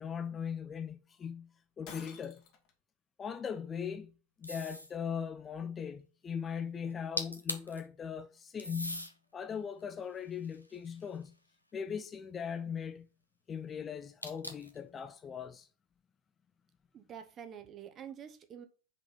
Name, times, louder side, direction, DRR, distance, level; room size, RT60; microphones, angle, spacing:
voice 1, 0.0-1.5 1.8-2.4 3.2-4.1 4.4-11.3 11.7-13.1 13.5-15.7, left 7 dB, 20° left, 0.4 m, -39 dB
Shatter, 1.9-2.7, left 6 dB, 40° left, 1.3 m, -50 dB
sound 1, 4.4-5.0 6.9-7.0 7.2-7.8 8.6-9.1 9.8-11.3 14.2-14.8, equal, 90° left, 0.7 m, -40 dB
voice 2, 16.9-18.7, right 8 dB, 30° right, 0.9 m, -47 dB
5.3 x 3.9 x 5.6 m
figure-of-eight pair, 90°, 0 cm